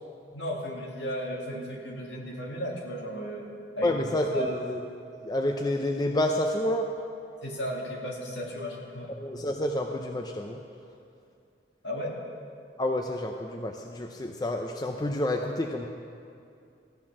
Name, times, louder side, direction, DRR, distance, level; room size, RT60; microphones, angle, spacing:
voice 1, 0.3-3.5 3.8-4.0 4.3-4.6 7.4-9.1 11.8-12.1, equal, 65° left, -2 dB, 2.1 m, -35 dB
voice 2, 3.8-4.8 5.2-6.9 9.1-10.6 12.8-15.9, left 1 dB, 20° left, 2 dB, 0.5 m, -29 dB
14.0 x 8.6 x 5.9 m, 2.5 s
head